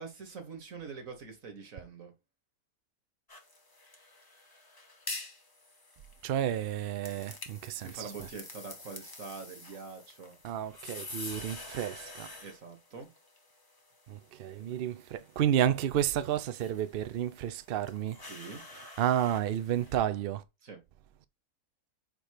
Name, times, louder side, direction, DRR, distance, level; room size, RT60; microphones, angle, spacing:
voice 1, 0.0-2.1 7.8-10.4 12.4-13.1 18.3-18.6 20.6-20.8, right 5 dB, 60° right, 1.9 m, -44 dB
sound 1, 3.3-20.0, left 2 dB, 15° left, 0.9 m, -48 dB
voice 2, 6.2-8.1 10.4-12.3 14.1-18.2 19.0-20.4, right 10 dB, 85° right, 0.5 m, -31 dB
4.6 x 4.5 x 4.9 m
omnidirectional pair, 1.6 m